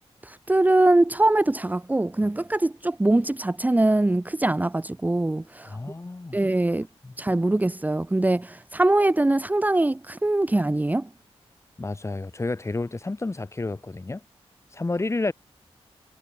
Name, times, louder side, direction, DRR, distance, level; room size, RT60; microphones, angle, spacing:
voice 1, 0.2-5.8 6.3-6.9 7.2-11.1, right 2 dB, 15° right, 1.3 m, -22 dB
voice 2, 5.6-6.4 7.0-7.1 11.8-14.2 14.7-15.3, left 2 dB, 25° left, 7.4 m, -30 dB
wide cardioid pair, 125°, 11 cm